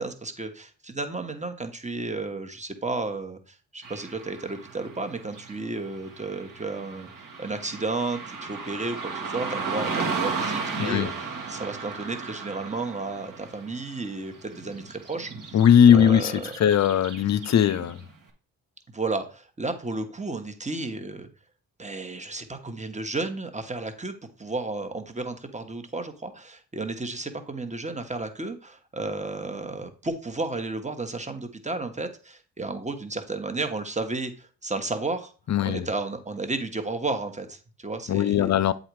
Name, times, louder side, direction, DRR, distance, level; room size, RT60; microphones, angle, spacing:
voice 1, 0.0-15.6 15.9-16.5 18.9-21.3 21.8-35.3 35.6-38.5, right 3 dB, 20° right, 1.3 m, -33 dB
Car passing by / Traffic noise roadway noise, 3.8-18.1, right 4 dB, 55° right, 1.8 m, -35 dB
voice 2, 10.8-11.1 15.5-18.0 35.5-35.9 38.1-38.7, left 9 dB, 45° left, 0.6 m, -19 dB
7.8 x 4.0 x 4.8 m
supercardioid pair, 55°, 38 cm